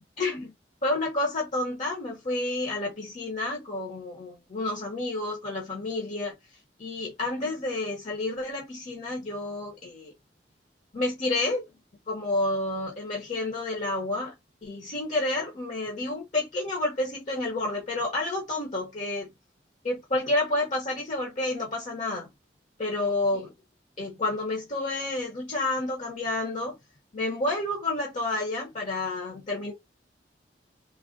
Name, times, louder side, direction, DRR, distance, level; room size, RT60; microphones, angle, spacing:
voice 1, 0.2-0.5 0.8-6.4 6.8-10.1 10.9-11.7 12.1-14.3 14.6-19.3 19.8-22.3 22.8-23.5 24.0-26.8 27.1-29.7, left 2 dB, 45° left, 0.8 m, -30 dB
3.3 x 2.1 x 2.4 m
head